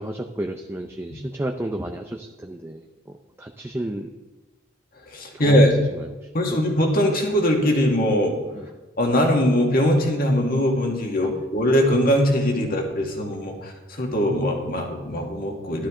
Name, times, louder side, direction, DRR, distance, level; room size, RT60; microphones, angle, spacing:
voice 1, 0.0-2.8 3.4-4.1 5.4-5.7 6.0-6.1 8.6-8.7 11.2-11.4, right 1 dB, 15° right, 4 dB, 0.5 m, -31 dB
voice 2, 5.1-5.7 6.3-8.3 9.0-15.9, equal, 50° left, 1 dB, 1.9 m, -21 dB
11.5 x 11.5 x 3.8 m, 1.2 s
head